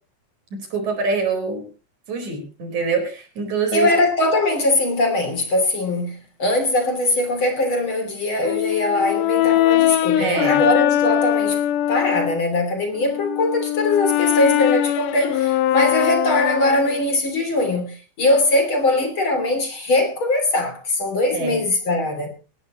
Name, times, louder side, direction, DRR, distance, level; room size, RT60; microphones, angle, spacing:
voice 1, 0.5-1.6 2.1-3.9 10.2-10.6 21.3-21.6, right 5 dB, 70° right, 5.9 m, -24 dB
voice 2, 3.7-6.1 6.4-11.6 11.9-22.3, left 2 dB, 40° left, 3.7 m, -21 dB
Brass instrument, 8.4-12.4 13.0-17.0, left 12 dB, 85° left, 2.4 m, -21 dB
19.5 x 16.5 x 3.0 m
omnidirectional pair, 3.5 m